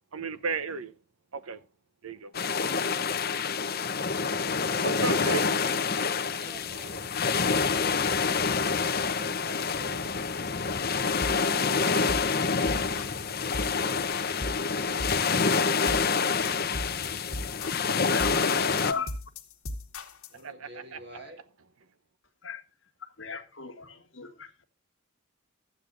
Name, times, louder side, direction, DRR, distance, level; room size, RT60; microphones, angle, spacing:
voice 1, 0.1-1.0 1.3-1.7 2.0-2.3 4.8-5.8 20.3-21.2, right 5 dB, 80° right, 0.8 m, -35 dB
sound 1, 2.3-18.9, left 5 dB, 45° left, 0.8 m, -27 dB
voice 2, 5.6-8.2 9.0-10.4 20.3-21.4, right 1 dB, 55° right, 4.3 m, -50 dB
sound 2, 11.2-11.4 11.8-12.3 12.7-13.2 13.5-13.8 14.1-14.7 15.0-15.5 15.9-16.2 16.4-20.4, left 1 dB, 80° left, 1.6 m, -38 dB
voice 3, 17.9-19.2 22.4-22.6 23.0-24.6, left 5 dB, 60° left, 1.6 m, -37 dB
14.0 x 9.3 x 2.5 m
head